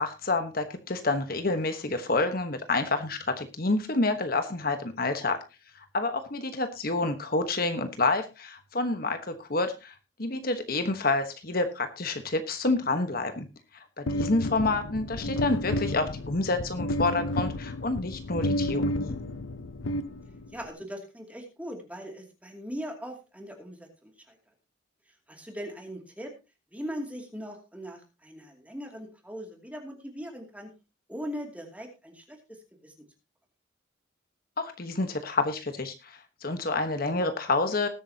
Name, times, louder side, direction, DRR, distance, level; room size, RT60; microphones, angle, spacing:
voice 1, 0.0-5.4 5.9-9.9 10.2-13.5 14.0-19.1 34.6-37.9, left 2 dB, 50° left, 8 dB, 1.2 m, -28 dB
sound 1, 14.1-20.7, left 1 dB, 75° left, 0.7 m, -31 dB
voice 2, 20.5-24.4 25.3-26.3 26.7-30.7 31.1-32.9, equal, 5° right, 2 dB, 2.5 m, -40 dB
20.0 x 8.6 x 2.8 m, 0.28 s
head